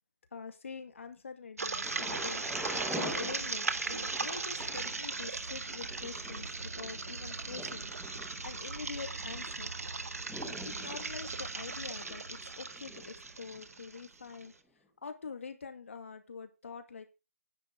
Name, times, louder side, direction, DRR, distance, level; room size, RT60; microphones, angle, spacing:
voice 1, 0.3-7.9 8.4-9.7 10.6-14.5 15.0-17.1, left 5 dB, 60° left, 7 dB, 2.2 m, -45 dB
sound 1, 1.6-14.4, right 3 dB, 85° right, 1.4 m, -38 dB
Thunder, 1.8-13.7 14.4-14.5, equal, ahead, 1.2 m, -45 dB
10.0 x 6.8 x 5.2 m, 0.29 s
hypercardioid pair, 165°, 8 cm